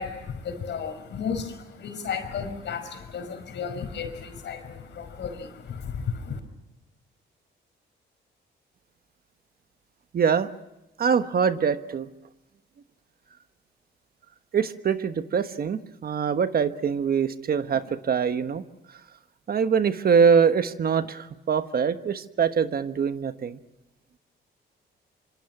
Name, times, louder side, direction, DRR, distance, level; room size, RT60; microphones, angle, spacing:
voice 1, 0.0-6.4, left 6 dB, 65° left, 8 dB, 5.3 m, -33 dB
voice 2, 10.1-10.5 11.0-12.1 14.5-19.0 19.5-23.6, right 6 dB, 50° right, 10 dB, 1.3 m, -24 dB
26.0 x 25.5 x 6.0 m, 0.95 s
cardioid pair, 90°, 20 cm